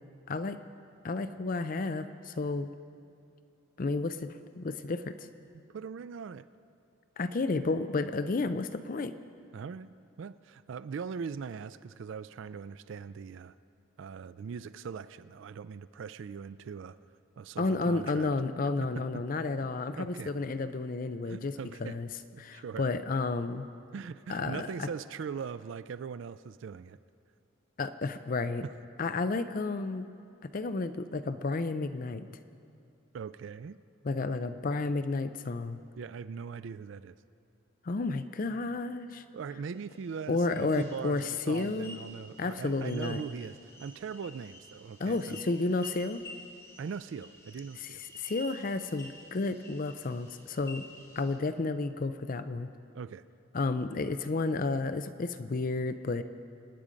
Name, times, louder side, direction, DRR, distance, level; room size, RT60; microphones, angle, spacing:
voice 1, 0.3-0.6 1.0-2.7 3.8-5.3 7.2-9.1 17.6-21.5 21.8-22.1 22.4-23.7 24.3-24.9 27.8-28.6 29.0-30.1 30.4-32.3 34.0-35.8 37.8-39.2 40.3-42.0 42.4-43.2 45.0-46.2 47.8-47.9 48.2-50.9 51.2-52.7 53.5-56.2, left 3 dB, 40° left, 11 dB, 0.4 m, -31 dB
voice 2, 5.7-6.5 9.5-13.5 14.0-17.0 17.4-18.3 18.8-18.9 19.6-19.7 20.0-20.3 21.2-22.0 22.3-22.9 23.9-27.0 28.6-28.7 33.1-33.8 36.0-37.2 39.3-45.4 46.8-48.0 52.9-53.2, right 6 dB, 65° right, 15 dB, 0.3 m, -40 dB
sound 1, 39.7-51.4, left 1 dB, 15° left, 2.1 m, -51 dB
26.0 x 9.8 x 5.1 m, 2.5 s
head